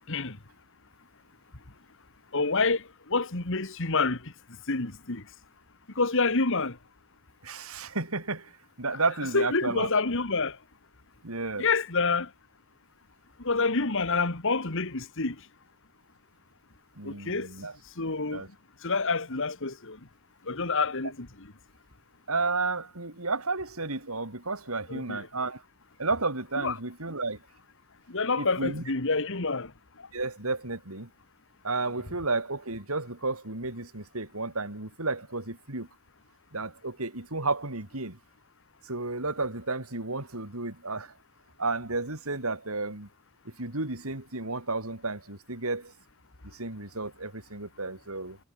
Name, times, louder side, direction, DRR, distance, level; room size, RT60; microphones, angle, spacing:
voice 1, 2.3-5.3 5.9-6.8 9.3-10.6 11.6-12.3 13.4-15.5 17.0-17.5 18.0-18.4 18.8-20.0 20.4-21.3 24.9-25.2 26.6-26.7 28.1-29.7 30.0-30.1, left 4 dB, 60° left, 2.2 m, -28 dB
voice 2, 7.4-9.9 11.2-11.7 17.0-17.8 18.3-18.5 22.3-25.6 26.0-27.4 28.4-28.8 30.1-31.1 31.6-35.9 36.5-38.2 38.8-41.2 41.6-43.1 43.4-45.9 46.4-48.4, right 3 dB, 75° right, 4.8 m, -32 dB
head